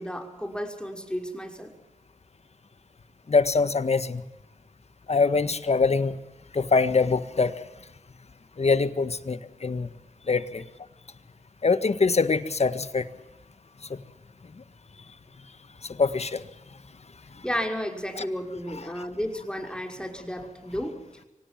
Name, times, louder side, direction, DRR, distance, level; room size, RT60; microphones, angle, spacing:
voice 1, 0.0-1.7 17.4-21.0, equal, 5° left, 4 dB, 5.6 m, -32 dB
voice 2, 3.3-4.2 5.1-6.1 6.5-7.5 8.6-9.9 10.3-10.6 11.6-13.0 16.0-16.4 18.2-18.3, left 4 dB, 55° left, 12 dB, 1.6 m, -23 dB
24.5 x 18.0 x 7.6 m, 0.98 s
cardioid pair, 45°, 13 cm